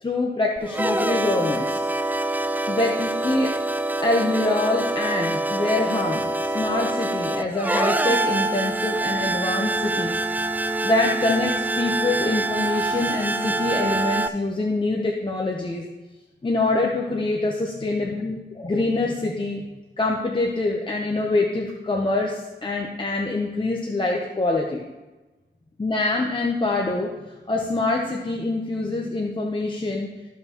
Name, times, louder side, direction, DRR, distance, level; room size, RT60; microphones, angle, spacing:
voice 1, 0.0-1.8 2.7-3.5 4.0-10.2 10.8-15.9 16.4-19.7 20.0-24.8 25.8-30.1, left 2 dB, 25° left, 0 dB, 0.9 m, -25 dB
sound 1, 0.6-14.3, right 2 dB, 10° right, 0.3 m, -25 dB
13.5 x 5.6 x 3.0 m, 1.1 s
wide cardioid pair, 100°, 19 cm